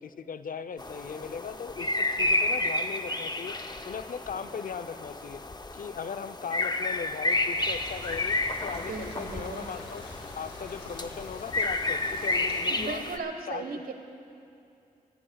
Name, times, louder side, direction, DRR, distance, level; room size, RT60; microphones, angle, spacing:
voice 1, 0.0-3.6 3.8-5.4 5.7-10.0 10.4-13.0 13.5-13.8, left 6 dB, 55° left, 11 dB, 0.7 m, -38 dB
sound 1, 0.8-13.2, left 2 dB, 25° left, 0.9 m, -31 dB
sound 2, 7.5-12.6, left 2 dB, 85° left, 2.9 m, -46 dB
voice 2, 8.7-9.7 12.7-13.9, right 4 dB, 60° right, 6 dB, 1.4 m, -37 dB
29.5 x 16.0 x 2.4 m, 2.7 s
supercardioid pair, 45°, 17 cm